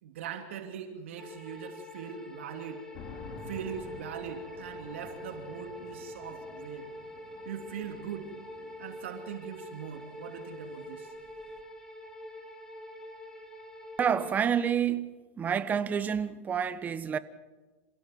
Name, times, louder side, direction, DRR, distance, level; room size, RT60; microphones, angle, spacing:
voice 1, 0.0-2.8 3.5-6.9 7.4-8.3 8.8-11.1, right 8 dB, 80° right, 2.8 m, -41 dB
sound 1, 1.2-14.4, equal, 10° left, 4.4 m, -45 dB
sound 2, 2.9-11.6, left 5 dB, 50° left, 3.6 m, -51 dB
voice 2, 14.0-17.2, right 8 dB, 25° right, 1.3 m, -29 dB
28.0 x 16.0 x 7.8 m
supercardioid pair, 120°, 6 cm